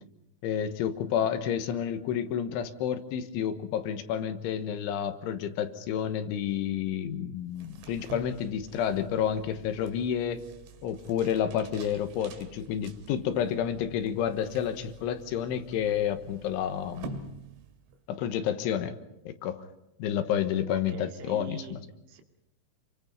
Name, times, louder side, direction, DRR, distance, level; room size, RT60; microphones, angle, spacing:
voice 1, 0.4-10.4 10.8-17.2 18.1-19.0 19.3-19.7 20.0-21.8, left 9 dB, 75° left, 9 dB, 3.5 m, -30 dB
sound 1, 7.5-18.1, right 4 dB, 70° right, 4.1 m, -48 dB
voice 2, 20.7-22.2, right 6 dB, 85° right, 3 dB, 5.0 m, -45 dB
28.0 x 24.0 x 5.4 m, 0.86 s
omnidirectional pair, 5.9 m